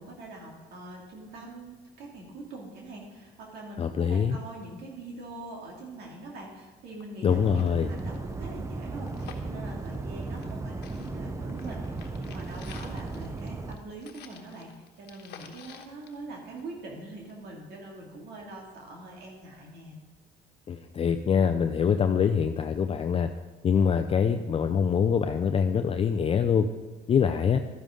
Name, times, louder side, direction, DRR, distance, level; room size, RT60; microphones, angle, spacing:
voice 1, 0.0-14.7 15.0-20.0, right 2 dB, 70° right, -2 dB, 2.4 m, -43 dB
voice 2, 3.8-4.4 7.2-7.9 20.7-23.3 23.6-26.7 27.1-27.6, left 7 dB, 35° left, 7 dB, 0.5 m, -24 dB
sound 1, 6.6-6.7 7.0-7.1 7.4-10.6 10.8-16.9 17.3-17.4, left 8 dB, 75° left, 1.2 m, -51 dB
sound 2, 7.3-13.8, right 3 dB, 15° right, 0.6 m, -36 dB
12.5 x 10.5 x 3.8 m, 1.3 s
cardioid pair, 110°, 17 cm